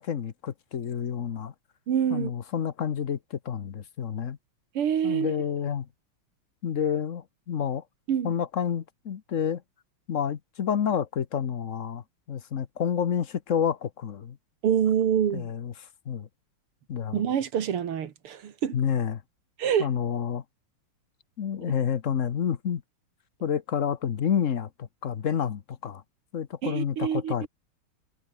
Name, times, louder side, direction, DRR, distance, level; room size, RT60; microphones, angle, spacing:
voice 1, 0.0-1.5 2.1-4.4 5.0-5.9 6.6-7.8 8.2-9.6 10.1-14.4 15.3-16.3 16.9-17.2 18.7-19.2 19.8-20.4 21.4-22.8 23.4-26.0 26.3-27.5, left 8 dB, 45° left, 1.1 m, -29 dB
voice 2, 1.9-2.3 4.7-5.3 8.1-8.3 14.6-15.5 17.1-18.7 19.6-19.9 26.6-27.3, right 8 dB, 85° right, 2.6 m, -26 dB
omnidirectional pair, 2.4 m